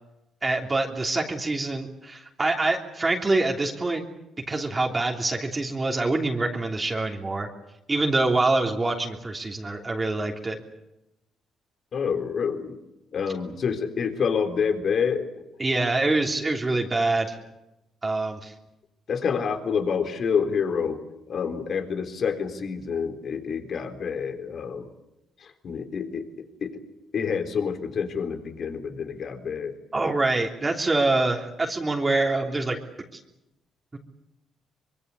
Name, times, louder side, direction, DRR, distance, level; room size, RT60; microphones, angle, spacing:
voice 1, 0.4-4.0 4.5-7.5 7.9-10.6 15.6-17.4 18.0-18.5 29.9-32.8, right 2 dB, 25° right, 1 dB, 3.2 m, -25 dB
voice 2, 11.9-12.8 13.1-15.4 19.1-21.0 21.3-24.9 25.4-26.8 27.1-29.7, left 6 dB, 55° left, 7 dB, 3.8 m, -28 dB
25.0 x 23.0 x 8.3 m, 0.91 s
cardioid pair, 90°, 0 cm